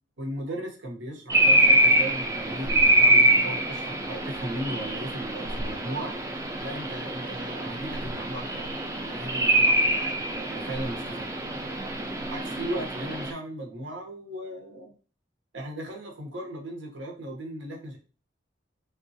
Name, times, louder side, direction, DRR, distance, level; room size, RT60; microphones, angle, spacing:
voice 1, 0.2-6.2 6.6-8.6 8.9-11.3 12.3-14.9 15.5-18.0, right 1 dB, 85° right, 1 dB, 0.8 m, -37 dB
sound 1, 1.3-13.3, right 1 dB, 15° right, 0.3 m, -24 dB
3.5 x 2.2 x 2.6 m, 0.35 s
head